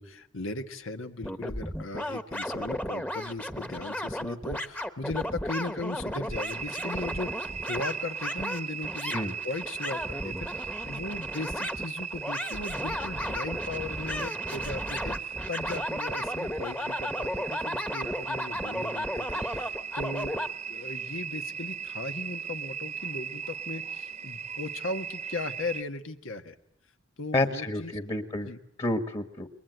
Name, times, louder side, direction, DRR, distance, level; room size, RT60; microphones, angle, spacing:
voice 1, 0.0-9.2 9.4-26.5 27.2-28.0 28.4-28.6, left 2 dB, 85° left, 7 dB, 1.5 m, -37 dB
sound 1, 1.2-20.5, left 1 dB, 10° left, 1.2 m, -34 dB
sound 2, 6.3-25.8, right 7 dB, 35° right, 1.1 m, -37 dB
voice 2, 27.3-28.5 28.8-29.5, left 2 dB, 30° left, 9 dB, 1.6 m, -29 dB
28.5 x 22.5 x 9.3 m, 0.74 s
head